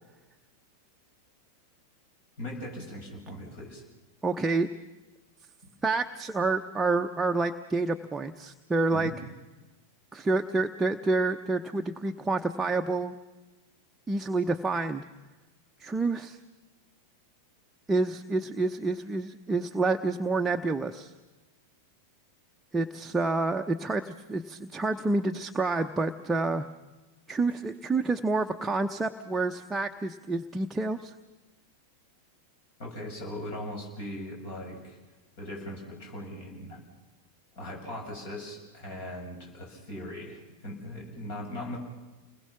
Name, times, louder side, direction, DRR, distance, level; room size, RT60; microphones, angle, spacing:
voice 1, 2.4-3.8 5.6-5.7 8.9-9.1 32.8-35.0 35.4-36.8 37.5-41.8, left 1 dB, 50° left, 1 dB, 7.5 m, -39 dB
voice 2, 4.2-4.7 5.8-9.1 10.1-13.1 14.1-15.0 15.8-16.4 17.9-21.1 22.7-26.7 27.3-31.1, right 3 dB, 10° right, 5 dB, 0.8 m, -28 dB
30.0 x 20.5 x 5.9 m, 1.2 s
figure-of-eight pair, 90°, 0 cm